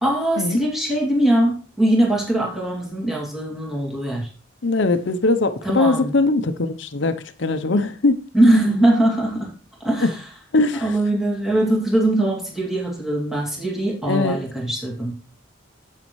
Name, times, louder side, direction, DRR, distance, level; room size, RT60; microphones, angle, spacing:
voice 1, 0.0-4.3 5.6-6.1 8.3-9.5 9.8-10.2 10.8-15.1, right 1 dB, ahead, 2.2 m, -21 dB
voice 2, 4.6-8.2 10.0-10.1 10.5-11.0 14.1-14.4, left 3 dB, 60° left, 0.7 m, -21 dB
9.5 x 8.3 x 3.1 m
head